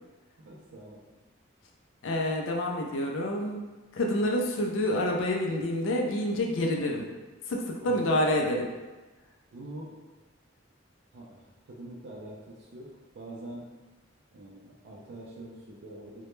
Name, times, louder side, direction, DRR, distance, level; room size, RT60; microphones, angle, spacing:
voice 1, 0.4-1.1 4.2-4.3 7.8-8.1 9.5-10.1 11.1-13.8 14.3-16.3, right 1 dB, 60° right, -4 dB, 0.4 m, -45 dB
voice 2, 2.0-3.7 3.9-7.0 7.5-8.7, left 1 dB, 80° left, 1 dB, 0.4 m, -28 dB
2.1 x 2.0 x 3.0 m, 1.2 s
head